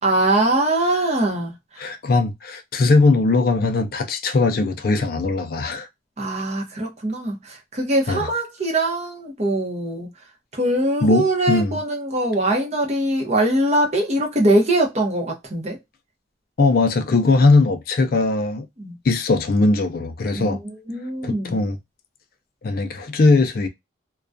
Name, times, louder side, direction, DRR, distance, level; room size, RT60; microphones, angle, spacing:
voice 1, 0.0-2.0 6.2-10.3 10.5-15.8 18.8-19.0 20.3-21.6, right 1 dB, 35° right, 0.7 m, -22 dB
voice 2, 1.8-5.9 8.1-8.3 11.0-11.7 16.6-18.7 19.0-20.6 21.2-21.8 22.6-23.7, left 3 dB, 50° left, 0.3 m, -19 dB
2.3 x 2.2 x 2.5 m
head